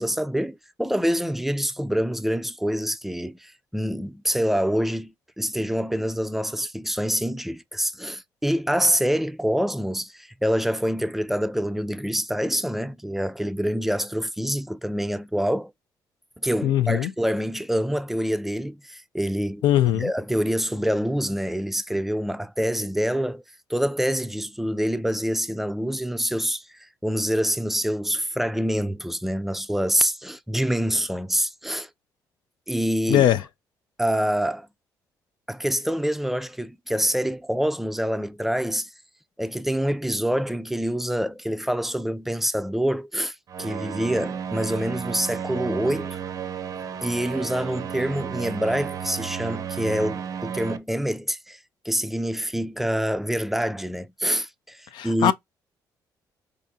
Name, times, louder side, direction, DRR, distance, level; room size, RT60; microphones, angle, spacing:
voice 1, 0.0-15.7 16.4-19.6 19.9-23.4 23.7-31.9 32.7-33.3 34.0-34.7 35.5-38.9 39.4-46.2 47.0-51.6 51.9-55.3, equal, 5° right, 0.3 m, -26 dB
voice 2, 16.6-17.1 19.6-20.1 33.1-33.4 54.9-55.3, left 11 dB, 85° left, 0.4 m, -20 dB
sound 1, 43.5-50.8, right 8 dB, 55° right, 0.5 m, -33 dB
4.7 x 2.5 x 2.7 m
cardioid pair, 105°, 8 cm